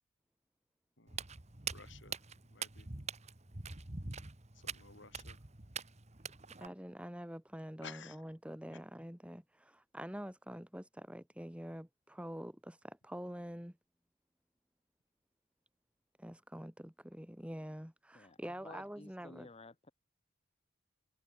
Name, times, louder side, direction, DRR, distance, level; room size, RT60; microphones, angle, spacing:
Walk footsteps, 1.1-6.7, right 5 dB, 30° right, 1.6 m, -44 dB
voice 1, 1.7-2.2 2.5-2.9 4.5-5.4 7.8-8.2, left 5 dB, 55° left, 5.8 m, -54 dB
voice 2, 6.6-13.8 16.2-19.5, equal, 5° right, 1.6 m, -46 dB
voice 3, 18.1-19.9, left 3 dB, 30° left, 0.8 m, -54 dB
head